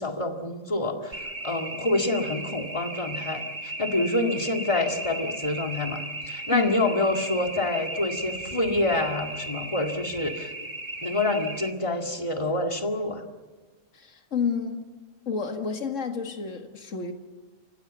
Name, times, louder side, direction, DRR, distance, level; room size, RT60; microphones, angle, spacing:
voice 1, 0.0-10.5 11.0-13.2, left 2 dB, 25° left, 4 dB, 2.1 m, -27 dB
sound 1, 1.1-11.7, right 2 dB, 40° right, 2.3 m, -36 dB
voice 2, 13.9-14.8 15.3-17.1, left 6 dB, 70° left, 6 dB, 2.1 m, -30 dB
28.5 x 15.5 x 8.1 m, 1.3 s
omnidirectional pair, 1.4 m